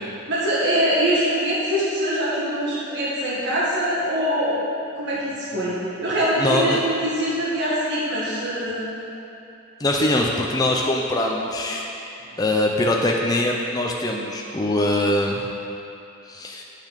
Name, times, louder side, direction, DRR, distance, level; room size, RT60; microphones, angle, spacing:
voice 1, 0.3-4.6 4.9-6.7 7.0-8.8 9.9-10.0, equal, 60° right, -7 dB, 1.8 m, -23 dB
voice 2, 6.4-6.8 9.8-11.9 12.4-15.4 16.3-16.6, left 1 dB, 20° left, -1 dB, 0.6 m, -22 dB
8.4 x 6.7 x 6.6 m, 2.8 s
head